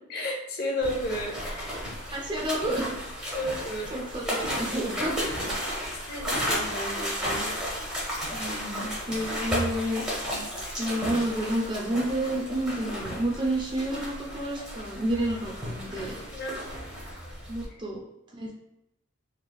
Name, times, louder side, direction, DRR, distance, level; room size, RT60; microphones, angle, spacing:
voice 1, 0.1-1.9 3.3-4.0 4.2-5.0 5.9-7.6 16.3-16.6, left 1 dB, 50° left, 0 dB, 0.6 m, -34 dB
sound 1, 0.8-17.7, equal, 5° right, 0.8 m, -33 dB
voice 2, 2.1-2.9 3.9-5.1 8.3-10.0 10.8-16.2 17.5-18.0 18.3-18.5, right 1 dB, 25° right, -2 dB, 0.5 m, -30 dB
3.1 x 2.8 x 2.3 m, 0.86 s
head